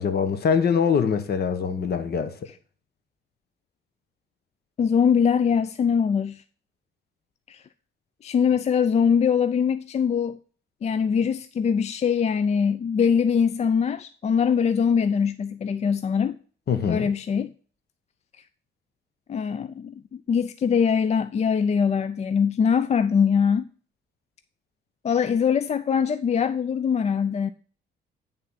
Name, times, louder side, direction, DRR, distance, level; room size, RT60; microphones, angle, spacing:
voice 1, 0.0-2.4 16.7-17.1, left 6 dB, 55° left, 1.1 m, -23 dB
voice 2, 4.8-6.4 7.5-7.6 8.2-10.4 10.8-16.4 16.9-17.5 19.3-23.7 25.0-27.5, left 7 dB, 35° left, 0.4 m, -22 dB
10.5 x 3.7 x 5.7 m
cardioid pair, 90°, 20 cm